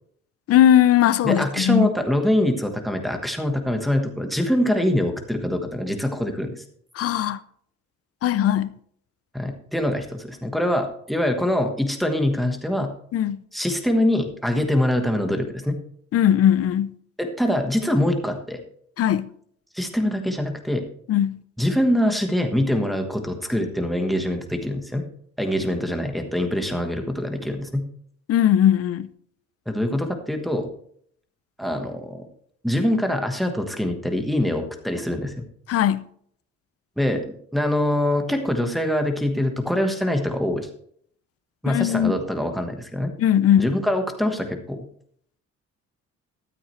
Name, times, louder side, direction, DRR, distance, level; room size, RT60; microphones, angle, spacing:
voice 1, 0.5-1.9 7.0-7.4 8.2-8.8 13.1-13.4 16.1-16.9 19.0-19.3 21.1-21.4 28.3-29.1 35.7-36.1 41.6-42.1 43.2-43.7, left 10 dB, 55° left, 0.6 m, -19 dB
voice 2, 1.2-6.6 9.3-12.9 13.5-15.8 17.2-18.6 19.7-20.8 21.6-25.0 25.4-27.8 29.7-30.7 31.6-32.3 32.6-35.4 37.0-40.7 41.6-43.1 43.6-44.8, left 1 dB, ahead, 1.3 m, -24 dB
13.0 x 13.0 x 3.2 m
cardioid pair, 180°, 29 cm